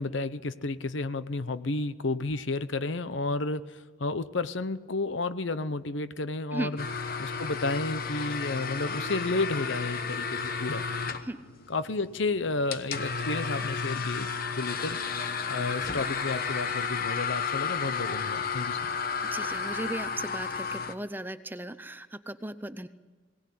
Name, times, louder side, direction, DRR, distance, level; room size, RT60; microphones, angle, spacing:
voice 1, 0.0-6.9 7.2-10.9 11.7-15.0 15.5-18.9, left 3 dB, 70° left, 13 dB, 0.8 m, -31 dB
sound 1, 6.8-20.9, left 5 dB, 45° left, 1.1 m, -32 dB
voice 2, 19.3-22.9, right 1 dB, 10° right, 12 dB, 0.6 m, -36 dB
22.0 x 18.0 x 8.6 m, 1.4 s
head